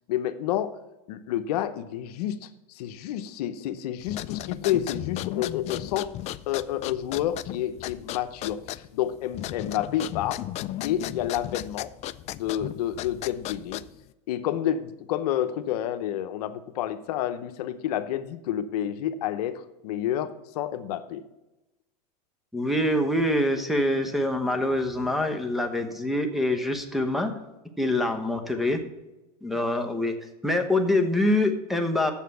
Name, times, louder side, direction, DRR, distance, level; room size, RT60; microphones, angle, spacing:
voice 1, 0.1-0.7 1.1-6.1 6.5-10.4 10.8-11.9 12.3-13.8 14.3-21.2, left 11 dB, 75° left, 9 dB, 0.8 m, -29 dB
sound 1, 4.0-14.1, left 14 dB, 35° left, 0.4 m, -36 dB
voice 2, 22.5-27.3 27.8-28.8 29.4-30.1 30.4-32.1, left 1 dB, ahead, 2 dB, 1.0 m, -25 dB
7.4 x 6.8 x 6.9 m, 1.0 s
supercardioid pair, 125°, 20 cm